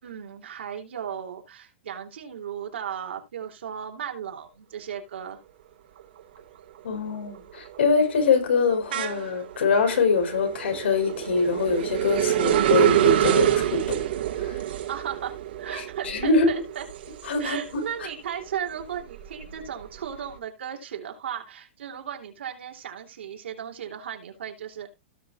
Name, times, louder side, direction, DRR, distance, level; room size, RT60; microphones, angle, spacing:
voice 1, 0.0-5.4 14.9-16.8 17.4-24.9, right 8 dB, 85° right, 3.3 m, -35 dB
sound 1, 6.0-6.4 6.8-18.0 18.5-20.2, right 11 dB, 60° right, 2.0 m, -26 dB
voice 2, 6.8-14.1 14.4-14.6 15.7-16.5 17.2-17.6, left 4 dB, 90° left, 4.8 m, -24 dB
17.0 x 6.2 x 2.6 m
supercardioid pair, 170°, 6 cm